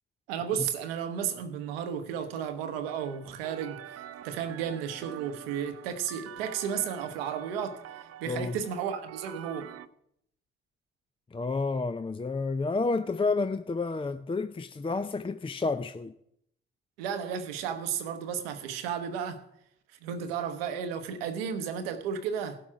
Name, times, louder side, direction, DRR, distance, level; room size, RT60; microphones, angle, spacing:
voice 1, 0.3-7.8 8.2-9.7 17.0-19.4 20.0-22.6, right 8 dB, 85° right, 0.9 m, -33 dB
sound 1, 2.9-9.9, right 11 dB, 55° right, 0.6 m, -46 dB
voice 2, 8.3-8.6 11.3-16.2, left 3 dB, 20° left, 0.5 m, -30 dB
16.5 x 7.7 x 4.9 m
hypercardioid pair, 40°, 29 cm